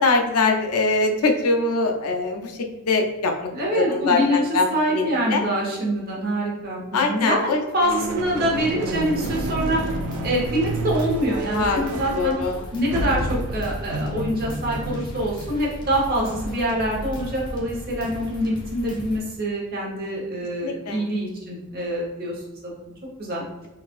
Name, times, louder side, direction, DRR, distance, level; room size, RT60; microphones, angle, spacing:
voice 1, 0.0-2.6 2.9-3.5 3.7-5.5 6.9-7.6 11.5-11.8 12.1-12.6 14.1-14.3 20.6-21.1, left 3 dB, 80° left, 3 dB, 0.5 m, -22 dB
voice 2, 3.5-9.8 10.2-12.3 12.7-22.4 22.6-22.9 23.2-23.5, right 1 dB, 45° right, -3 dB, 1.0 m, -25 dB
sound 1, 7.8-17.9, right 1 dB, 85° right, 0.4 m, -31 dB
sound 2, 8.9-19.2, equal, 20° left, 0.6 m, -38 dB
3.9 x 2.4 x 2.5 m, 1.1 s
head